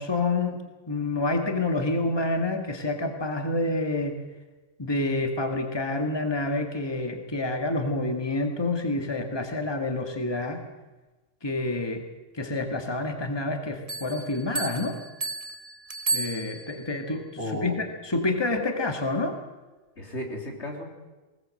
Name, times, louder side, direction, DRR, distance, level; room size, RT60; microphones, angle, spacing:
voice 1, 0.0-4.2 4.8-10.6 11.4-12.0 12.3-15.0 16.1-19.3, left 2 dB, 20° left, 4 dB, 1.9 m, -28 dB
Bell, 13.9-17.0, right 3 dB, 35° right, 1.1 m, -33 dB
voice 2, 17.4-17.8 20.0-20.8, left 1 dB, 75° left, 2 dB, 3.5 m, -33 dB
20.0 x 19.0 x 7.7 m, 1.2 s
omnidirectional pair, 1.2 m